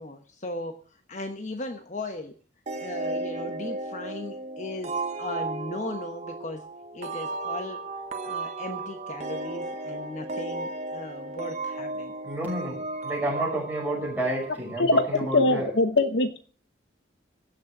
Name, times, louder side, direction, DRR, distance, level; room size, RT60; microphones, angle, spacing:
voice 1, 0.0-2.3 2.8-6.6 6.9-7.8 8.2-12.4, left 2 dB, 40° left, 6 dB, 1.1 m, -37 dB
sound 1, 2.7-15.1, right 2 dB, 35° right, 1.3 m, -35 dB
voice 2, 12.2-15.7, right 1 dB, 10° right, -3 dB, 6.0 m, -30 dB
voice 3, 15.3-16.4, left 2 dB, 65° left, 9 dB, 1.0 m, -21 dB
16.0 x 6.5 x 7.7 m, 0.43 s
head